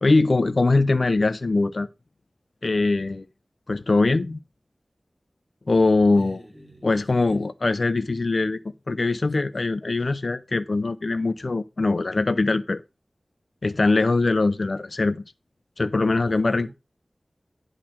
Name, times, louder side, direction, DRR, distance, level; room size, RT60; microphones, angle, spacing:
voice 1, 0.0-1.9 2.6-3.3 3.7-4.4 5.7-6.4 6.8-8.6 8.9-12.8 13.6-15.2 15.8-16.7, left 3 dB, 65° left, 0.7 m, -22 dB
voice 2, 6.1-7.4 9.3-9.4 16.1-16.7, right 1 dB, 30° right, 4.7 m, -42 dB
11.0 x 4.0 x 6.0 m
wide cardioid pair, 55°, 0 cm